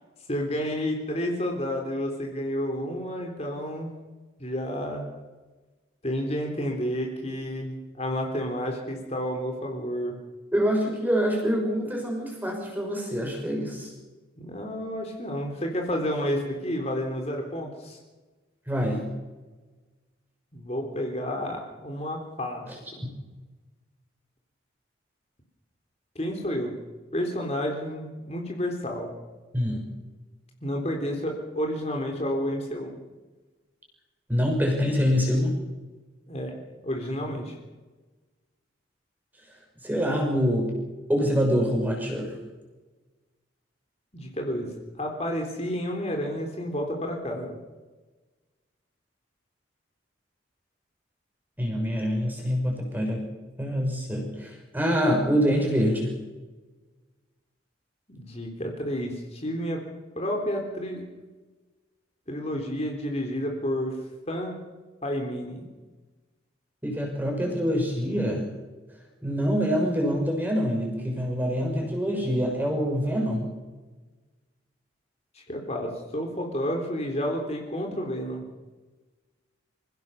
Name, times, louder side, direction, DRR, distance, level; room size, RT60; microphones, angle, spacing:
voice 1, 0.3-3.9 4.4-5.1 6.0-10.1 14.4-18.0 20.5-22.6 23.0-23.1 26.2-26.7 27.1-29.1 30.6-32.9 36.3-36.6 36.8-37.6 44.1-47.6 58.1-59.8 60.2-61.0 62.3-64.0 64.3-64.6 65.0-65.7 75.3-78.4, equal, 35° left, 2 dB, 3.7 m, -30 dB
voice 2, 10.5-13.9 18.7-19.1 22.7-22.8 23.0-23.1 29.5-29.8 34.3-35.6 39.8-40.7 41.1-42.4 51.6-53.2 53.6-56.1 66.8-68.4 69.2-73.5, equal, 10° right, 0 dB, 6.2 m, -25 dB
27.5 x 16.5 x 7.1 m, 1.2 s
head